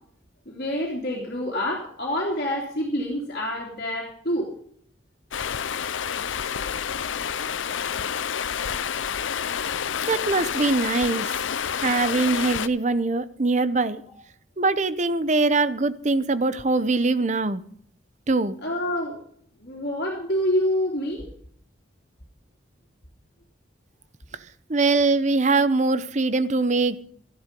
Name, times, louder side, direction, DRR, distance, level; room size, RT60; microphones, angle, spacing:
voice 1, 0.5-4.5 18.6-19.2 19.6-21.3, left 1 dB, 55° left, -3 dB, 2.7 m, -27 dB
Stream, 5.3-12.7, left 8 dB, 85° left, 0.6 m, -29 dB
voice 2, 10.1-11.3 11.8-14.0 14.6-17.6 18.3-18.5 24.7-27.0, right 3 dB, 40° right, 14 dB, 0.7 m, -22 dB
13.5 x 11.5 x 5.2 m, 0.62 s
head